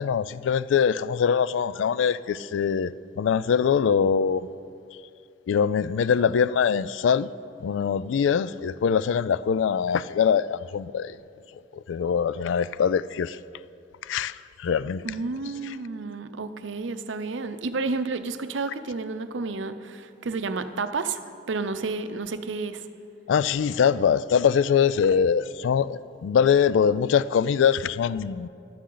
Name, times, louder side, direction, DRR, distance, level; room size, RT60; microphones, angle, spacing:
voice 1, 0.0-4.5 5.5-7.3 7.6-11.1 11.9-13.4 14.1-15.0 23.3-28.5, left 7 dB, 85° left, 0.3 m, -23 dB
voice 2, 15.0-21.2 21.5-22.8, right 3 dB, 80° right, 0.6 m, -31 dB
15.0 x 11.5 x 3.9 m
head